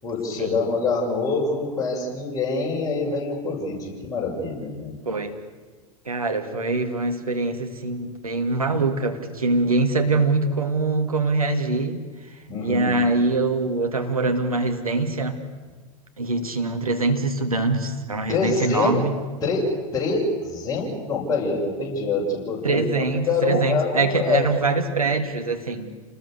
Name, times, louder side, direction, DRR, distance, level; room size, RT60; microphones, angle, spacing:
voice 1, 0.0-4.9 12.5-13.0 18.3-19.0 19.4-19.6 19.9-24.5, left 3 dB, 20° left, -3 dB, 7.4 m, -25 dB
voice 2, 5.1-5.4 6.1-12.0 12.6-15.4 16.2-19.1 22.6-25.9, right 3 dB, 85° right, 4 dB, 2.3 m, -23 dB
28.5 x 20.5 x 6.7 m, 1.4 s
figure-of-eight pair, 90°, 18 cm